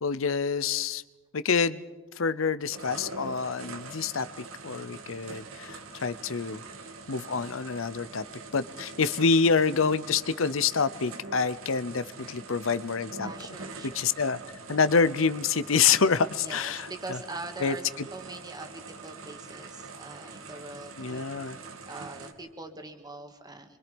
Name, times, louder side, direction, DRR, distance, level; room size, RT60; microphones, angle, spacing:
voice 1, 0.0-1.0 1.3-1.8 2.2-4.3 4.6-6.6 7.1-8.2 8.5-13.3 13.8-14.4 14.7-17.2 17.6-17.7 21.0-21.6, left 5 dB, 70° left, 15 dB, 0.7 m, -27 dB
sound 1, 2.7-22.3, right 3 dB, 85° right, 2.2 m, -44 dB
voice 2, 13.2-14.1 16.4-21.6 21.9-23.8, right 3 dB, 20° right, 5 dB, 2.0 m, -43 dB
26.5 x 24.0 x 5.3 m, 1.2 s
head